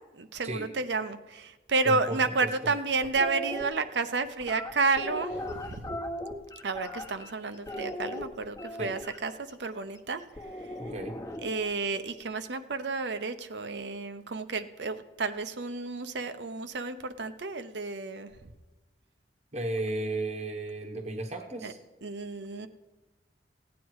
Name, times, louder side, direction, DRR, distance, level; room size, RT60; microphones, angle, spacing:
voice 1, 0.1-6.0 6.6-9.3 9.6-10.2 11.4-18.3 21.6-21.7 22.0-22.7, right 3 dB, 80° right, 9 dB, 0.8 m, -31 dB
voice 2, 1.8-2.7 8.8-8.9 10.8-11.2 19.5-21.8, right 2 dB, 40° right, 3 dB, 1.0 m, -34 dB
sound 1, 3.0-3.6 4.4-7.3 7.7-9.2 10.4-11.7, left 1 dB, 20° left, 1.0 m, -38 dB
16.5 x 9.3 x 4.7 m, 1.2 s
head